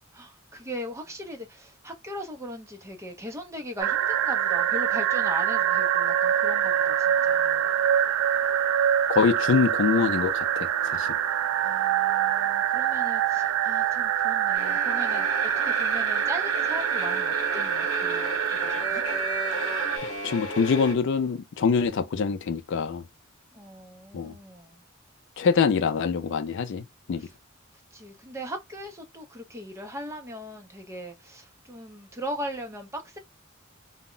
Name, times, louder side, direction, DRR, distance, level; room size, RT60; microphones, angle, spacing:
voice 1, 0.1-7.7 11.6-19.0 23.5-24.8 27.1-27.3 27.7-33.2, equal, 15° right, 0.5 m, -39 dB
sound 1, 3.8-20.0, right 9 dB, 85° right, 0.3 m, -25 dB
voice 2, 9.1-11.1 20.2-23.0 24.1-24.3 25.4-27.3, left 5 dB, 60° left, 0.4 m, -24 dB
sound 2, 14.5-20.9, equal, 80° left, 1.1 m, -34 dB
2.1 x 2.0 x 3.6 m
head